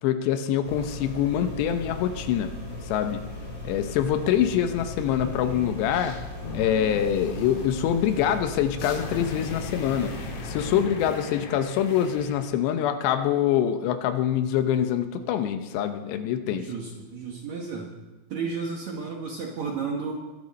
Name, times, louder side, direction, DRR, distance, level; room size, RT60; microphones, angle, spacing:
voice 1, 0.0-2.5 2.8-3.2 3.6-6.2 6.5-10.1 10.4-16.7, left 10 dB, 80° left, 8 dB, 2.9 m, -25 dB
sound 1, 0.6-10.8, left 1 dB, 25° left, 5.4 m, -38 dB
sound 2, 5.0-12.4, left 3 dB, 55° left, 2.8 m, -39 dB
voice 2, 16.5-17.9 18.3-20.1, right 5 dB, 75° right, 1 dB, 1.6 m, -32 dB
22.0 x 10.0 x 4.1 m, 1.2 s
omnidirectional pair, 5.0 m